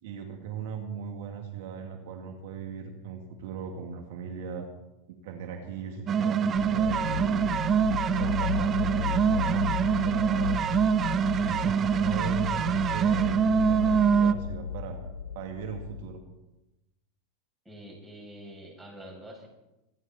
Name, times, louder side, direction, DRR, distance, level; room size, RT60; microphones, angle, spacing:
voice 1, 0.0-4.7 5.1-7.4 8.1-10.6 11.2-15.0 15.3-16.2, right 7 dB, 70° right, 4 dB, 2.2 m, -38 dB
sound 1, 6.1-14.3, right 7 dB, 35° right, 0.9 m, -25 dB
sound 2, 6.5-16.2, left 8 dB, 85° left, 1.1 m, -34 dB
voice 2, 17.6-19.5, equal, 10° right, -2 dB, 7.9 m, -46 dB
26.0 x 10.5 x 4.3 m, 0.97 s
hypercardioid pair, 100°, 0 cm